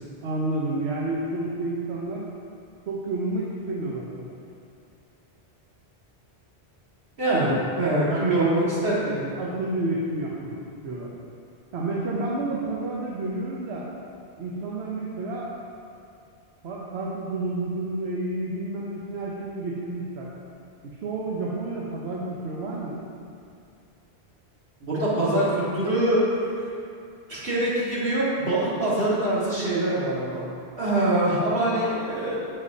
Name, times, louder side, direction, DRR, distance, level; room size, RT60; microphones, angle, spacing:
voice 1, 0.2-2.3 2.9-4.3 7.3-7.5 8.0-8.8 9.4-10.5 10.8-11.1 11.7-13.9 14.4-15.5 16.6-20.3 21.0-23.0, right 2 dB, 80° right, -4 dB, 1.1 m, -30 dB
voice 2, 7.2-7.5 7.8-9.3 24.8-26.4 27.3-30.4 30.8-32.4, right 1 dB, 60° right, -8 dB, 2.0 m, -24 dB
8.0 x 7.1 x 2.7 m, 2.4 s
omnidirectional pair, 1.1 m